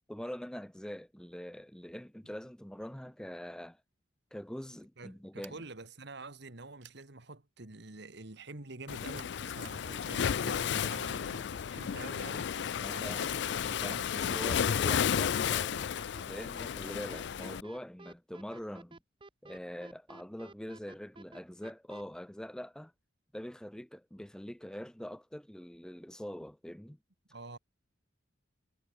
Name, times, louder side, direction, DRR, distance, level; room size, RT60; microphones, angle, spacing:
voice 1, 0.1-3.8 4.3-5.6 12.7-13.3 13.6-19.0 19.4-22.9 23.3-27.0, equal, 5° left, 0.5 m, -44 dB
voice 2, 5.0-14.5 27.3-27.6, right 2 dB, 65° right, 1.9 m, -47 dB
sound 1, 5.4-5.7 6.8-7.1 9.2-9.9, right 11 dB, 90° right, 6.2 m, -55 dB
Waves surf, 8.9-17.6, left 8 dB, 65° left, 0.4 m, -33 dB
sound 2, 9.6-22.0, right 2 dB, 25° right, 0.9 m, -52 dB
head